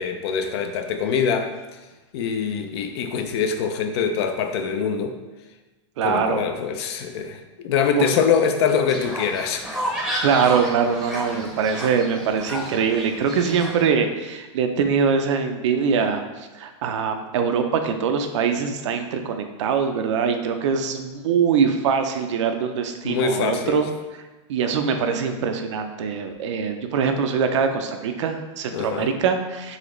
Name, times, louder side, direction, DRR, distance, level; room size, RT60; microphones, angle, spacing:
voice 1, 0.0-1.5 2.1-5.2 6.0-9.6 23.0-23.8 28.7-29.1, left 6 dB, 60° left, 6 dB, 0.4 m, -24 dB
voice 2, 6.0-6.4 7.9-8.1 10.2-23.9 24.5-29.8, right 6 dB, 75° right, 6 dB, 0.5 m, -23 dB
Fowl, 8.9-13.9, equal, ahead, 0.7 m, -31 dB
4.0 x 2.8 x 3.1 m, 1.2 s
supercardioid pair, 140°, 16 cm